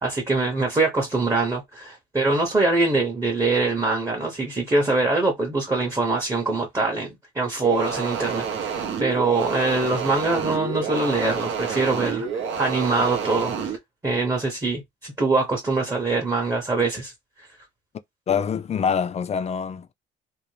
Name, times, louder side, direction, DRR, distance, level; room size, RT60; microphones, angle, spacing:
voice 1, 0.0-13.8 14.0-17.1, right 3 dB, 15° right, 0.7 m, -23 dB
sound 1, 7.6-13.8, right 6 dB, 75° right, 0.7 m, -29 dB
voice 2, 18.3-19.9, left 7 dB, 35° left, 0.4 m, -25 dB
2.6 x 2.0 x 3.1 m
cardioid pair, 90°, 20 cm